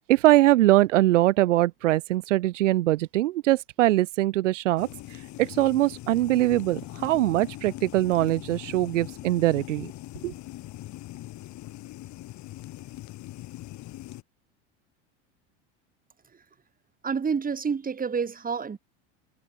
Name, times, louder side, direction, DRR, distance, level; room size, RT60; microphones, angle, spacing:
voice 1, 0.1-9.9 10.2-10.3, right 16 dB, 85° right, 1.3 m, -22 dB
sound 1, 4.8-14.2, left 16 dB, 50° left, 7.7 m, -41 dB
voice 2, 17.0-18.8, right 6 dB, 25° right, 4.8 m, -28 dB
hypercardioid pair, 95°, 36 cm